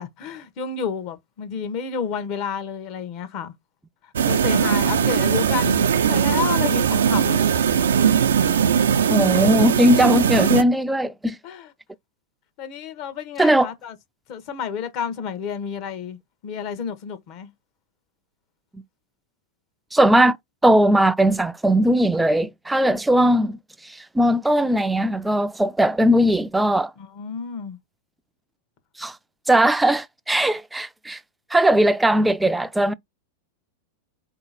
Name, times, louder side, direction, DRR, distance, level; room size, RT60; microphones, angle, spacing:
voice 1, 0.0-3.5 4.0-7.4 11.4-11.7 12.6-14.0 14.3-17.5 27.0-27.8, left 7 dB, 50° left, 1.0 m, -30 dB
sound 1, 4.2-10.6, right 8 dB, 85° right, 0.5 m, -19 dB
voice 2, 9.1-11.4 13.4-13.7 19.9-20.4 20.6-23.6 24.1-26.9 29.0-29.1 29.5-31.2 31.5-32.9, right 1 dB, 5° right, 0.4 m, -18 dB
4.0 x 2.9 x 4.0 m
hypercardioid pair, 110°, 0 cm